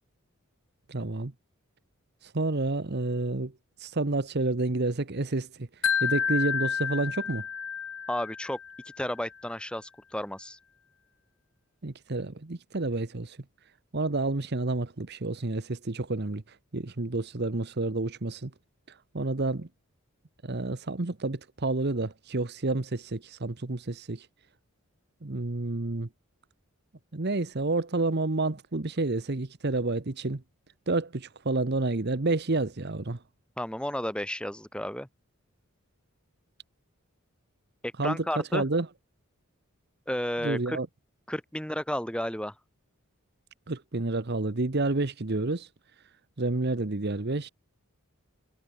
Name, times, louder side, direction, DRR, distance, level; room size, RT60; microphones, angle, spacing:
voice 1, 0.9-1.3 2.2-3.5 3.8-5.7 6.0-7.4 11.8-13.4 13.9-16.4 16.7-18.5 19.1-19.7 20.4-24.3 25.2-26.1 27.1-30.4 30.9-33.2 38.0-38.2 38.5-38.9 40.4-40.9 43.7-45.7 46.4-47.5, right 2 dB, 50° right, 1.1 m, -29 dB
Wind chime, 5.8-8.9, left 7 dB, 65° left, 1.3 m, -30 dB
voice 2, 8.1-8.6 9.0-10.6 33.6-35.1 37.8-38.6 40.1-40.8 41.3-42.5, equal, 5° left, 6.5 m, -32 dB
head